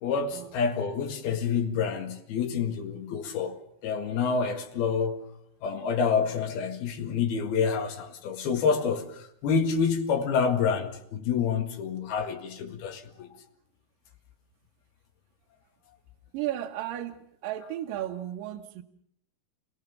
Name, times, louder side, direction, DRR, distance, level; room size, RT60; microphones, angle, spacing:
voice 1, 0.0-5.3 5.6-13.3, left 6 dB, 80° left, 3.8 m, -28 dB
voice 2, 16.3-18.8, right 12 dB, 70° right, 2.7 m, -34 dB
29.5 x 18.0 x 7.1 m
omnidirectional pair, 4.3 m